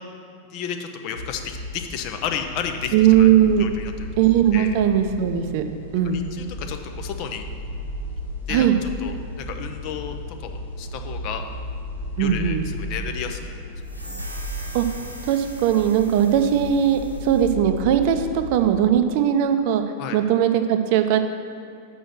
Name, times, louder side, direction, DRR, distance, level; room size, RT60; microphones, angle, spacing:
voice 1, 0.5-3.3 3.6-3.9 4.5-4.7 6.1-7.4 8.5-8.7 9.0-10.2 10.4-11.4 12.2-13.6 20.0-20.2, left 8 dB, 45° left, 6 dB, 0.6 m, -32 dB
sound 1, 1.1-18.7, equal, 80° left, 1.5 m, -35 dB
voice 2, 2.9-3.7 4.2-5.6 5.9-6.2 8.5-8.8 12.2-12.7 14.7-14.8 15.2-19.8 20.1-21.2, right 10 dB, 45° right, 7 dB, 0.5 m, -19 dB
sound 2, 13.8-17.5, right 1 dB, 85° right, 0.8 m, -41 dB
6.1 x 5.4 x 6.2 m, 2.6 s
figure-of-eight pair, 90°, 0 cm